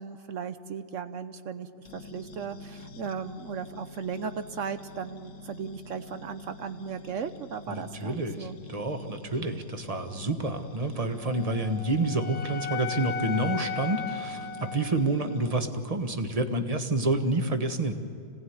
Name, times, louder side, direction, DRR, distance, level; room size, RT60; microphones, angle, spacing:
voice 1, 0.0-1.7 1.9-8.6 9.3-9.6, right 6 dB, 60° right, 11 dB, 0.8 m, -36 dB
sound 1, 1.8-15.6, left 3 dB, 70° left, 2.2 m, -47 dB
voice 2, 7.7-17.9, right 2 dB, 25° right, 6 dB, 1.1 m, -29 dB
Wind instrument woodwind instrument, 11.2-15.4, left 6 dB, 50° left, 0.8 m, -36 dB
26.0 x 17.5 x 9.6 m, 2.6 s
omnidirectional pair, 2.1 m